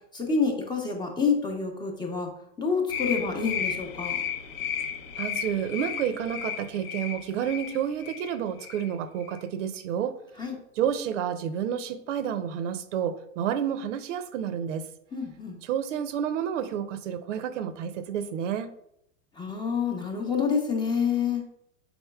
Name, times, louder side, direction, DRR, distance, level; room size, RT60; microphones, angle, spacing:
voice 1, 0.1-2.3 2.6-4.2 10.4-10.5 15.1-15.6 19.4-21.4, left 5 dB, 10° left, 2 dB, 0.7 m, -27 dB
sound 1, 2.9-8.3 8.6-8.9 9.2-9.4, left 8 dB, 50° left, 0.7 m, -33 dB
voice 2, 5.2-10.2 10.8-14.8 15.6-18.7, right 9 dB, 80° right, 11 dB, 0.6 m, -30 dB
5.6 x 4.0 x 2.3 m, 0.77 s
supercardioid pair, 130°, 36 cm